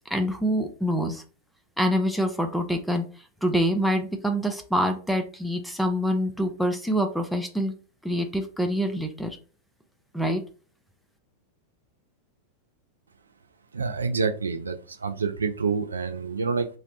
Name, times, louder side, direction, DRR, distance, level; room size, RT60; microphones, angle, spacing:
voice 1, 0.1-1.2 1.8-3.0 3.4-7.7 8.0-9.4 10.1-10.4, equal, ahead, 5 dB, 0.5 m, -25 dB
voice 2, 13.7-16.7, right 5 dB, 75° right, 7 dB, 0.3 m, -27 dB
2.7 x 2.0 x 3.9 m, 0.38 s
figure-of-eight pair, 90°, 0 cm